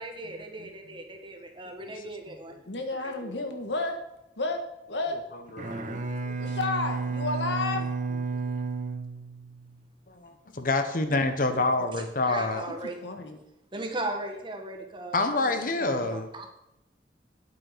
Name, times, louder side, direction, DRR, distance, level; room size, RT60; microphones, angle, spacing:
voice 1, 0.0-2.5 3.0-3.3 12.3-13.0 13.7-15.5 15.8-16.5, right 2 dB, 30° right, 3 dB, 1.6 m, -37 dB
voice 2, 2.6-4.0 4.4-4.6 4.9-5.2 6.4-7.9 11.8-11.9 13.0-13.4, left 3 dB, 85° left, 5 dB, 1.5 m, -31 dB
voice 3, 5.3-6.4 8.1-8.2 10.1-12.6 15.1-16.3, left 2 dB, 50° left, 8 dB, 1.1 m, -28 dB
Bowed string instrument, 5.5-9.8, right 4 dB, 45° right, 1.1 m, -32 dB
9.1 x 8.4 x 5.1 m, 0.89 s
head